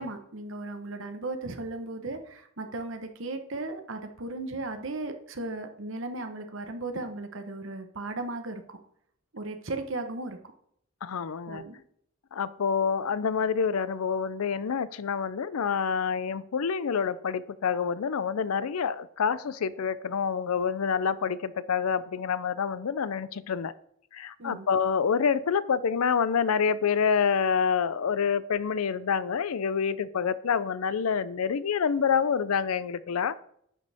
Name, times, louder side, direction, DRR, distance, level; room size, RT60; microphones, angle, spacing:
voice 1, 0.0-8.8 9.3-10.4 11.5-11.8 24.4-24.7, right 2 dB, 60° right, 6 dB, 1.1 m, -36 dB
voice 2, 11.0-11.6 12.3-23.7 24.1-33.4, left 6 dB, 85° left, 17 dB, 0.5 m, -27 dB
10.5 x 6.6 x 3.5 m, 0.68 s
head